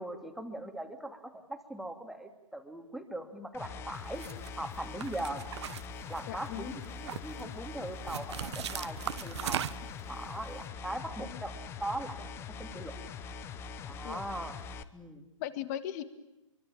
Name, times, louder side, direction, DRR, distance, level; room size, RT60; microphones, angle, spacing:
voice 1, 0.0-4.2 4.5-5.4 6.1-9.6 10.1-12.3 12.6-12.9 13.8-14.6 14.9-15.3, right 1 dB, ahead, 5 dB, 2.5 m, -40 dB
sound 1, 3.5-14.8, left 5 dB, 15° left, 1.1 m, -43 dB
sound 2, 4.1-4.5 5.0-6.5 6.8-7.4 8.1-10.0, right 9 dB, 55° right, 1.4 m, -38 dB
voice 2, 6.3-6.8 11.2-11.4 14.0-14.2 15.4-16.0, left 12 dB, 30° left, 12 dB, 2.2 m, -38 dB
26.0 x 24.0 x 8.8 m, 0.93 s
hypercardioid pair, 155°, 17 cm